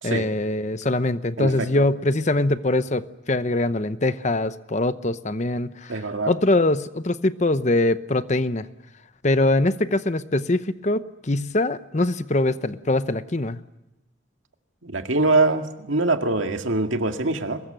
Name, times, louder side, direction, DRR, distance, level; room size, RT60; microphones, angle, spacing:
voice 1, 0.0-6.0 6.3-8.7 9.2-13.6, left 2 dB, 35° left, 0.8 m, -23 dB
voice 2, 1.4-1.7 5.9-6.3 14.8-17.6, right 2 dB, 90° right, 2.1 m, -23 dB
23.5 x 21.0 x 9.0 m
head